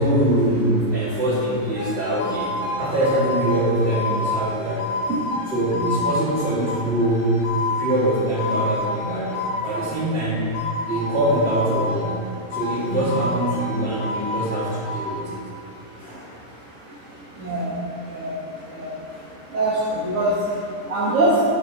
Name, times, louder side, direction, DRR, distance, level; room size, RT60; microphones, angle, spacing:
voice 1, 0.0-4.9 5.5-7.4 7.7-10.4 10.9-12.1 12.5-15.4 16.0-16.3 17.5-17.7 19.2-19.3, right 1 dB, 45° right, -7 dB, 2.4 m, -23 dB
sound 1, 1.8-10.1 10.5-12.2 12.5-15.1, left 2 dB, 55° left, 1.2 m, -29 dB
voice 2, 17.4-17.8 18.0-18.4 18.7-18.9 19.5-21.4, right 1 dB, 65° right, -9 dB, 1.8 m, -23 dB
12.0 x 6.7 x 3.0 m, 2.6 s
omnidirectional pair, 1.5 m